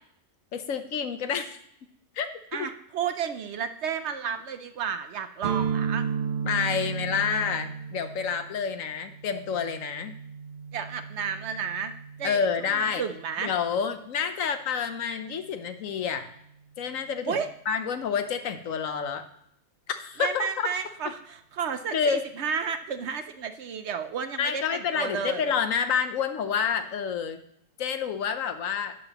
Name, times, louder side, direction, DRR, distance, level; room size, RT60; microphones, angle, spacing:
voice 1, 0.5-1.6 2.1-2.3 2.5-2.7 6.4-10.2 12.2-13.0 13.4-16.3 16.8-19.2 19.9-20.7 21.9-22.2 24.4-27.4 27.8-28.9, left 6 dB, 70° left, 9 dB, 1.2 m, -28 dB
voice 2, 2.5-6.0 10.7-11.9 12.2-12.5 12.7-13.5 17.3-17.5 20.2-25.4, right 7 dB, 65° right, 9 dB, 0.8 m, -32 dB
sound 1, 5.4-13.2, right 6 dB, 50° right, 1.3 m, -34 dB
11.5 x 8.9 x 2.9 m, 0.71 s
omnidirectional pair, 1.4 m